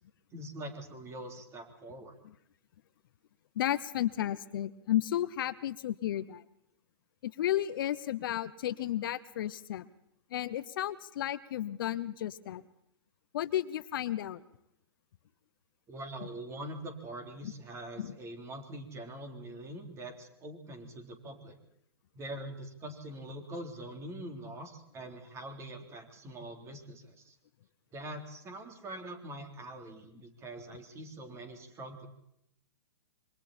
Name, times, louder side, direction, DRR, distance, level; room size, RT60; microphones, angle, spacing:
voice 1, 0.3-2.2 15.9-21.6 22.1-27.4 27.9-32.1, right 1 dB, 20° right, 5 dB, 3.7 m, -44 dB
voice 2, 3.5-6.4 7.2-9.9 10.3-12.6 13.3-14.4 17.4-17.5 18.0-18.1, left 12 dB, 55° left, 14 dB, 0.9 m, -33 dB
26.5 x 23.5 x 4.4 m, 0.76 s
hypercardioid pair, 130°, 13 cm